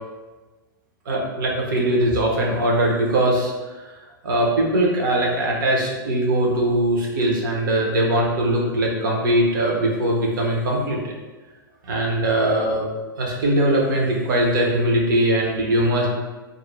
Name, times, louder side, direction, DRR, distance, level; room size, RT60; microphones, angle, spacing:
voice 1, 1.1-3.5 4.2-11.1 11.9-12.9 13.2-16.1, right 1 dB, 65° right, -1 dB, 0.8 m, -21 dB
2.5 x 2.1 x 3.1 m, 1.2 s
hypercardioid pair, 105°, 12 cm